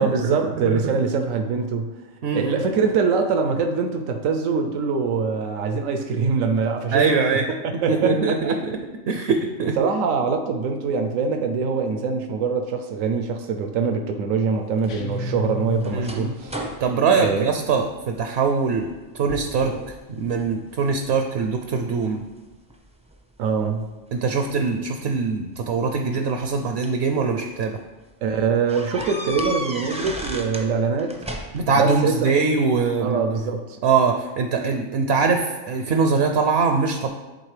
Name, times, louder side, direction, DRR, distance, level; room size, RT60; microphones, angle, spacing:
voice 1, 0.0-1.9 2.3-7.4 7.6-8.6 9.8-16.5 17.1-17.4 23.4-23.9 26.1-26.2 28.2-31.2 31.7-32.3 33.0-33.8, right 5 dB, 85° right, 5 dB, 1.0 m, -23 dB
voice 2, 2.2-2.6 6.9-7.4 7.9-8.8 9.1-9.9 15.9-16.3 16.8-18.9 19.1-22.2 24.1-27.8 31.5-33.2 33.8-37.1, right 4 dB, 65° right, 5 dB, 0.7 m, -22 dB
sound 1, 14.8-18.2 18.6-19.0 19.3-20.0 20.4-21.1 21.7-23.2 24.3-24.4 25.7-27.1 27.6-27.7 28.0-28.1 28.7-30.7 31.0-31.8, equal, 10° right, 0.4 m, -35 dB
sound 2, 14.9-16.6, left 1 dB, 70° left, 1.0 m, -32 dB
11.0 x 3.9 x 3.3 m, 1.2 s
omnidirectional pair, 1.3 m